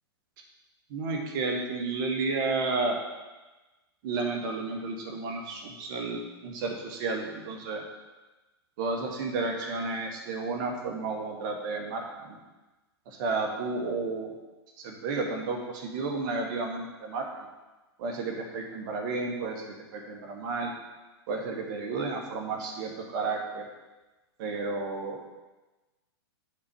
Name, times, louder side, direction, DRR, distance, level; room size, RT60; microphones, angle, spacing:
voice 1, 0.9-3.0 4.0-7.8 8.8-12.4 13.1-14.3 14.8-17.3 18.0-20.7 21.3-23.7 24.4-25.2, right 3 dB, 50° right, 2 dB, 2.0 m, -32 dB
8.4 x 4.9 x 6.9 m, 1.1 s
hypercardioid pair, 115°, 14 cm